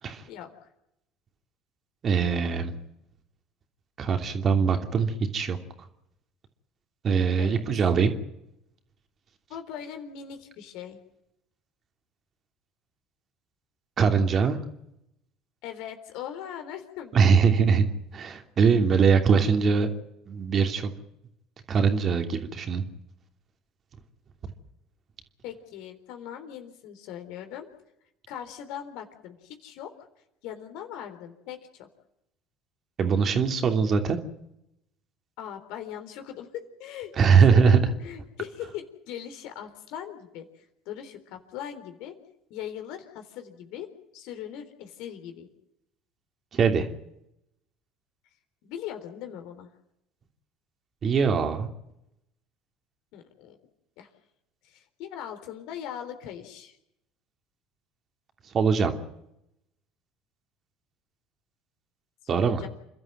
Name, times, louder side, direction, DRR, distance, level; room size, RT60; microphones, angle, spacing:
voice 1, 2.0-2.7 4.0-5.6 7.0-8.1 14.0-14.6 17.1-17.8 18.1-19.9 20.3-20.9 21.7-22.8 33.0-34.2 37.2-37.9 46.5-46.9 51.0-51.7 58.5-58.9 62.3-62.6, right 6 dB, 40° right, 6 dB, 2.9 m, -22 dB
voice 2, 9.5-11.0 15.6-17.4 25.4-27.7 28.3-29.9 30.4-31.9 35.4-42.2 42.5-45.5 48.6-49.7 53.1-53.6 54.0-54.1 54.6-56.8 62.3-62.7, left 10 dB, 65° left, 7 dB, 3.7 m, -40 dB
28.0 x 12.5 x 9.3 m, 0.83 s
hypercardioid pair, 65°, 0 cm